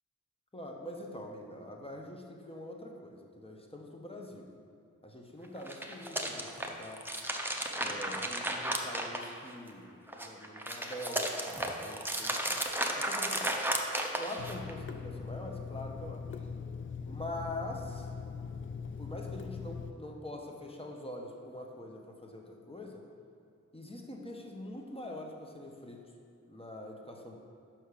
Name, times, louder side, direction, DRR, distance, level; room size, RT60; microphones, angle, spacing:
voice 1, 0.5-4.5 5.0-7.0 7.7-12.6 13.0-13.6 14.2-16.3 17.0-18.1 19.0-23.0 23.7-26.0 26.4-27.4, left 1 dB, 20° left, 1 dB, 1.0 m, -44 dB
sound 1, 5.6-9.7 10.1-14.7, right 1 dB, 5° right, 0.7 m, -34 dB
Water tap faucet / Sink (filling or washing), 14.4-19.9, left 5 dB, 45° left, 0.4 m, -41 dB
5.8 x 5.4 x 6.6 m, 2.5 s
wide cardioid pair, 75°, 29 cm